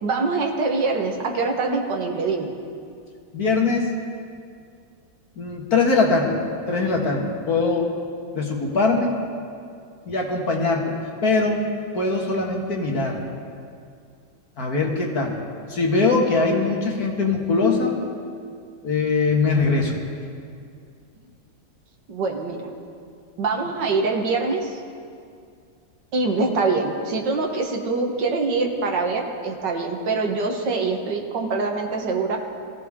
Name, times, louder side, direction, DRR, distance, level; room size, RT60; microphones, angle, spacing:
voice 1, 0.0-2.5 22.1-22.6 23.4-24.8 26.1-32.4, right 3 dB, 70° right, 2 dB, 2.0 m, -24 dB
voice 2, 3.3-3.9 5.4-6.4 6.7-8.0 8.3-9.1 10.1-10.9 11.2-11.6 11.9-13.2 14.6-15.4 15.7-18.0 18.8-20.0, left 3 dB, 55° left, 0 dB, 2.1 m, -21 dB
21.5 x 15.5 x 3.7 m, 2.3 s
omnidirectional pair, 2.0 m